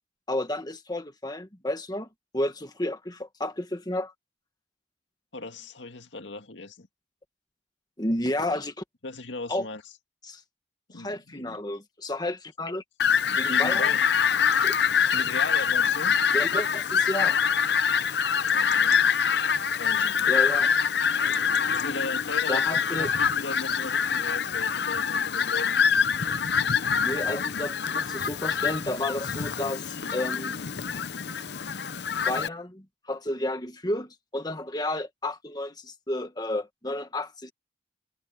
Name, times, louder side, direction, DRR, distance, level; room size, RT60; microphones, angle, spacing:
voice 1, 0.3-2.1 2.3-4.1 8.0-8.8 9.5-9.6 10.2-10.4 10.9-12.8 13.3-13.9 14.6-14.7 16.3-17.4 20.3-20.7 22.5-23.1 27.0-30.6 32.3-37.5, left 1 dB, 20° left, 1.7 m, -31 dB
voice 2, 5.3-6.9 9.0-9.8 10.9-11.6 13.3-14.1 15.1-16.1 18.3-19.3 19.7-20.4 21.2-25.8, left 2 dB, 75° left, 2.0 m, -38 dB
Fowl, 13.0-32.5, left 7 dB, 60° left, 0.7 m, -25 dB
head